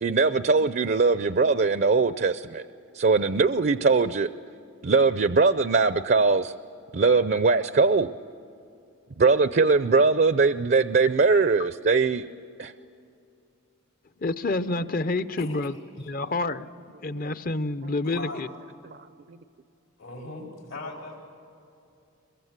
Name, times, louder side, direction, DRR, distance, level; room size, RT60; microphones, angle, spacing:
voice 1, 0.0-2.6 2.9-4.3 4.8-6.5 6.9-8.1 9.2-12.3 12.6-12.7 18.9-19.4, right 4 dB, 50° right, 0.5 m, -21 dB
voice 2, 14.2-15.8 16.1-16.7 17.0-18.5, left 2 dB, 45° left, 0.7 m, -28 dB
voice 3, 15.4-15.7 16.0-16.1 18.0-18.4 20.0-21.2, left 2 dB, 75° left, 5.1 m, -39 dB
23.0 x 22.0 x 8.0 m
head